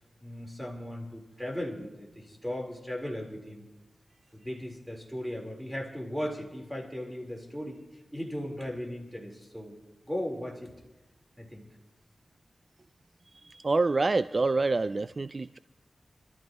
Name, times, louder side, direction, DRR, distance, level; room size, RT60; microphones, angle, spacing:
voice 1, 0.2-3.6 4.3-7.8 8.1-9.8 10.1-10.7 11.4-11.7, equal, 5° right, 0 dB, 4.1 m, -37 dB
voice 2, 13.4-15.6, right 3 dB, 50° right, 13 dB, 0.4 m, -27 dB
27.5 x 13.5 x 3.1 m, 1.1 s
wide cardioid pair, 60°, 0 cm